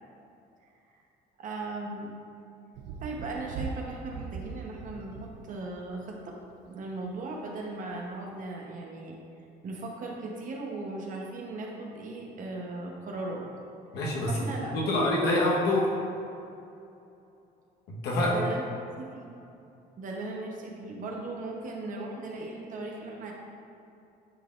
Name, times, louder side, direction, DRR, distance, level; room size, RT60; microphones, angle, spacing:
voice 1, 1.4-2.1 3.0-6.4 6.7-9.2 9.6-13.4 14.3-14.9 18.2-18.6 19.0-19.3 20.0-23.3, right 2 dB, 50° right, -1 dB, 1.1 m, -37 dB
Thunder, 2.7-6.6 7.9-8.0, right 5 dB, 90° right, 0.4 m, -40 dB
voice 2, 13.9-14.3 14.7-15.9 17.9-18.4, left 1 dB, 80° left, -4 dB, 1.4 m, -26 dB
9.9 x 4.0 x 2.6 m, 2.7 s
cardioid pair, 110°, 17 cm